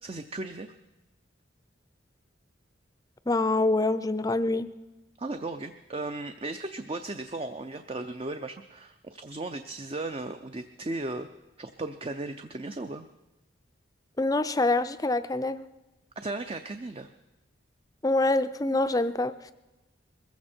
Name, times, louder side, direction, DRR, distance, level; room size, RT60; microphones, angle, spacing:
voice 1, 0.0-0.7 5.2-11.3 11.6-13.1 16.2-17.1, right 2 dB, 30° right, 8 dB, 0.5 m, -36 dB
voice 2, 3.3-4.7 14.2-15.6 18.0-19.5, left 2 dB, 20° left, 12 dB, 0.5 m, -25 dB
21.5 x 15.0 x 4.4 m, 1.0 s
head